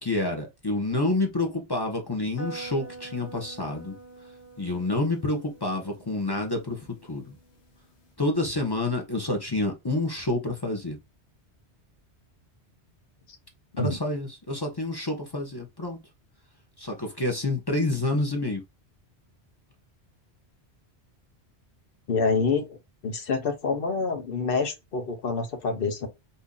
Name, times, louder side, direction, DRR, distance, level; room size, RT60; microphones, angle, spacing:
voice 1, 0.0-3.9 4.6-7.4 8.2-11.0 13.8-16.0 16.8-18.6, left 2 dB, 25° left, 0.7 m, -28 dB
sound 1, 2.4-8.1, right 4 dB, 80° left, 1.2 m, -46 dB
voice 2, 22.1-22.8 23.0-26.1, left 4 dB, 60° left, 1.0 m, -27 dB
2.7 x 2.7 x 3.6 m
omnidirectional pair, 1.1 m